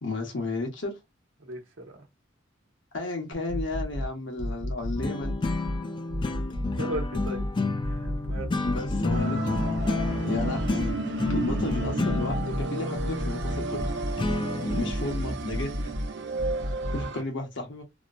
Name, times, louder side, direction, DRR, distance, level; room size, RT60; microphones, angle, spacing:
voice 1, 0.0-1.0 2.9-5.4 8.6-9.8 10.3-11.0 11.3-13.9 14.7-15.9 16.9-17.8, left 2 dB, 70° left, 1.1 m, -33 dB
voice 2, 1.4-2.0 6.8-7.4 7.8-8.6 16.9-17.1, right 1 dB, 75° right, 0.9 m, -37 dB
sound 1, 3.3-4.1 4.4-5.8 6.1-7.5 7.8-9.2 9.5-10.9 11.2-12.6 13.0-14.4 14.7-16.1 16.4-17.1, equal, 35° right, 0.8 m, -31 dB
sound 2, 5.0-14.9, left 3 dB, 25° left, 0.3 m, -30 dB
sound 3, 9.1-17.2, right 3 dB, 60° right, 0.5 m, -34 dB
3.0 x 2.0 x 2.4 m
head